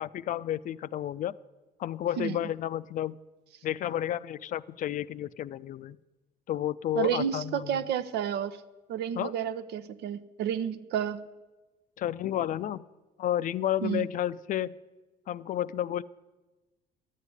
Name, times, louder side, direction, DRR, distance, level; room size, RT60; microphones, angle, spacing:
voice 1, 0.0-1.3 1.8-3.2 3.6-6.0 6.5-7.6 9.2-9.3 12.0-12.8 13.2-14.7 15.3-16.0, left 11 dB, 50° left, 17 dB, 0.4 m, -31 dB
voice 2, 6.9-8.6 8.9-11.3 13.8-14.1, right 9 dB, 75° right, 12 dB, 0.8 m, -31 dB
12.0 x 8.3 x 9.7 m, 1.1 s
cardioid pair, 110°, 17 cm